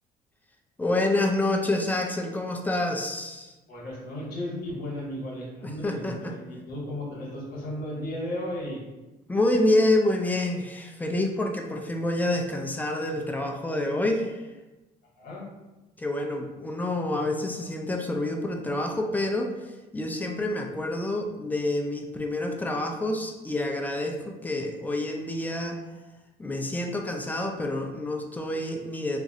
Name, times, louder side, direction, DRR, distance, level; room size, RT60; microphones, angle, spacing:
voice 1, 0.8-3.5 5.6-6.3 9.3-14.4 16.0-19.5 19.9-25.8 26.4-29.2, left 1 dB, 10° left, 3 dB, 0.3 m, -27 dB
voice 2, 3.7-8.8 15.2-15.4, left 1 dB, 60° left, -4 dB, 1.1 m, -35 dB
2.9 x 2.4 x 2.6 m, 1.1 s
cardioid pair, 110°, 17 cm